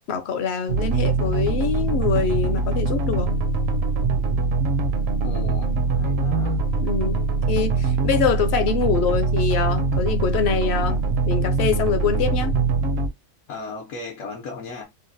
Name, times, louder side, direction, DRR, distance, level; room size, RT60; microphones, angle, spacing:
voice 1, 0.1-3.3 6.8-7.2 7.5-12.5, left 6 dB, 65° left, 0.7 m, -24 dB
sound 1, 0.7-13.1, right 3 dB, 60° right, 0.8 m, -23 dB
voice 2, 5.2-6.6 13.5-14.9, left 3 dB, 80° left, 1.2 m, -36 dB
3.8 x 2.1 x 2.6 m
omnidirectional pair, 1.3 m